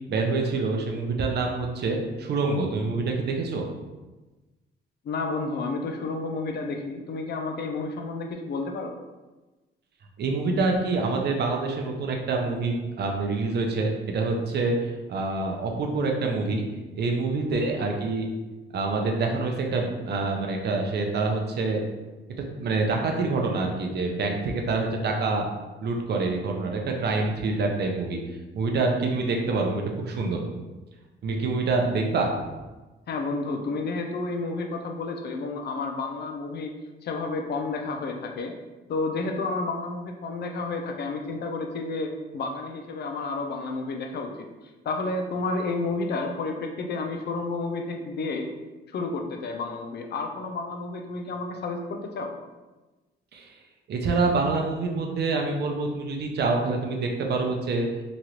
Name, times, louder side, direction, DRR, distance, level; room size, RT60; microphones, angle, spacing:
voice 1, 0.1-3.7 10.2-14.8 15.1-16.6 16.9-18.3 18.7-21.8 22.6-25.5 25.8-28.2 28.5-30.4 31.2-32.3 53.3-53.5 53.9-57.9, right 3 dB, 55° right, 2 dB, 0.6 m, -26 dB
voice 2, 5.0-8.9 33.1-36.7 37.0-38.5 38.9-44.5 44.8-48.5 48.9-52.3, left 3 dB, 55° left, 3 dB, 0.5 m, -31 dB
3.0 x 2.4 x 2.9 m, 1.2 s
cardioid pair, 90°, 20 cm